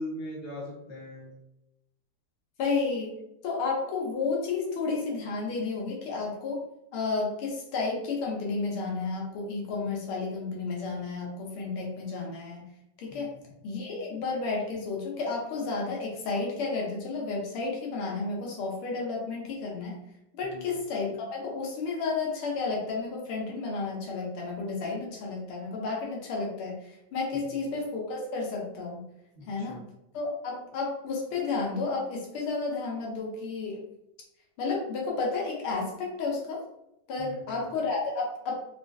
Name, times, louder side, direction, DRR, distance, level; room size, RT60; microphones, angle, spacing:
voice 1, 0.0-1.4 13.1-13.4 20.4-20.7 27.3-27.4 29.3-29.8 37.2-37.6, left 1 dB, 40° left, -4 dB, 0.7 m, -40 dB
voice 2, 2.6-3.1 3.4-6.7 6.9-12.7 13.0-13.3 13.6-19.9 20.4-29.0 29.5-29.8 30.1-33.8 34.6-36.6 37.1-38.5, left 4 dB, 80° left, -1 dB, 1.7 m, -32 dB
4.2 x 2.3 x 2.6 m, 0.83 s
omnidirectional pair, 2.4 m